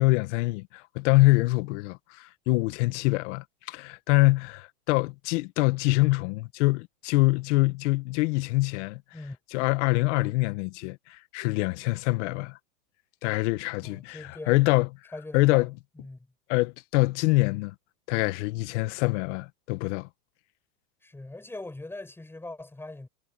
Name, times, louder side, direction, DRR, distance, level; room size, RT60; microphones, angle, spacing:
voice 1, 0.0-9.0 9.5-12.6 13.2-14.9 15.3-15.7 16.5-17.7 18.1-20.1, left 22 dB, 50° left, 1.4 m, -25 dB
voice 2, 13.8-14.6 15.1-15.7 15.9-16.3 21.0-23.1, left 2 dB, 5° left, 7.8 m, -41 dB
supercardioid pair, 145°, 46 cm